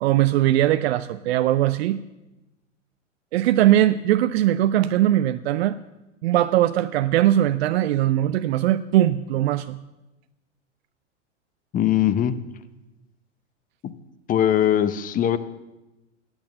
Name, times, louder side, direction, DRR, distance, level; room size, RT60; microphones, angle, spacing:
voice 1, 0.0-2.0 3.3-5.8 6.2-9.8, right 13 dB, 60° right, 12 dB, 0.5 m, -20 dB
voice 2, 11.7-12.3 13.8-13.9 14.3-15.4, left 10 dB, 20° left, 13 dB, 0.7 m, -20 dB
10.5 x 8.8 x 7.0 m, 1.0 s
hypercardioid pair, 95°, 37 cm